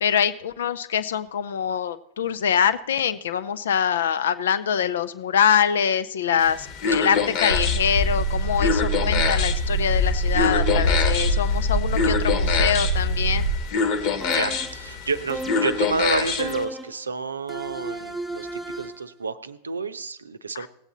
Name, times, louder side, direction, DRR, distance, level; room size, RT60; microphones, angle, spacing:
voice 1, 0.0-13.5 20.5-20.7, left 8 dB, 60° left, 13 dB, 0.6 m, -24 dB
sound 1, 6.4-16.6, left 5 dB, 45° left, 1.3 m, -26 dB
sound 2, 7.5-13.6, equal, 85° left, 3.3 m, -23 dB
sound 3, 14.2-14.8 15.3-15.9 16.4-17.0 17.5-19.1, right 1 dB, ahead, 1.0 m, -34 dB
voice 2, 14.3-20.7, right 4 dB, 75° right, 12 dB, 0.7 m, -29 dB
18.5 x 8.2 x 3.9 m, 0.74 s
figure-of-eight pair, 90°, 0 cm